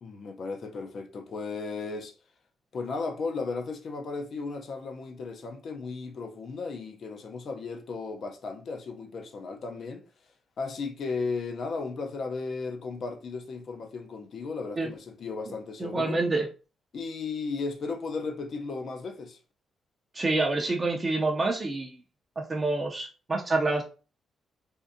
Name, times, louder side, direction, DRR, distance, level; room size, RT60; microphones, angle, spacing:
voice 1, 0.0-2.1 2.7-10.0 10.6-16.2 16.9-19.4, left 4 dB, 50° left, 0.6 m, -35 dB
voice 2, 15.8-16.5 20.1-22.0 22.4-23.8, right 2 dB, 25° right, 0.5 m, -27 dB
3.6 x 2.6 x 2.6 m
cardioid pair, 135°, 0 cm